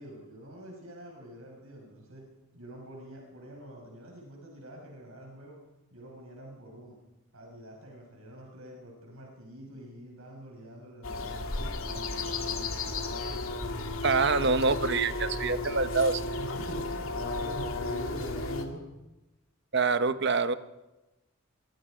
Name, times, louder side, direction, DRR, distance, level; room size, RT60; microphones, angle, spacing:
voice 1, 0.0-2.2 2.5-5.6 5.9-7.0 7.3-13.1 16.4-18.8, equal, 90° right, 0 dB, 5.8 m, -45 dB
sound 1, 11.0-18.7, left 2 dB, 75° left, 2.5 m, -34 dB
voice 2, 14.0-16.2 19.7-20.5, right 4 dB, 55° right, 12 dB, 1.0 m, -26 dB
24.5 x 23.5 x 5.1 m, 1.0 s
head